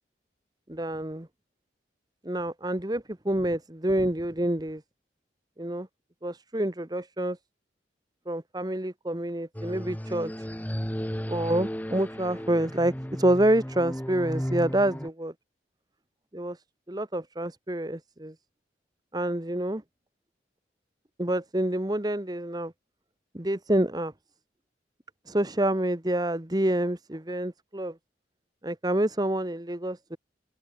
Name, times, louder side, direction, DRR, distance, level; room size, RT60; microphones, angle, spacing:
voice 1, 0.7-1.3 2.2-4.8 5.6-5.9 6.2-7.4 8.3-10.3 11.3-15.3 16.3-16.6 16.9-18.3 19.1-19.8 21.2-22.7 23.3-24.1 25.3-27.9 28.6-30.2, right 1 dB, 20° right, 1.3 m, -27 dB
sound 1, 9.5-15.1, equal, 10° left, 2.1 m, -34 dB
open air
head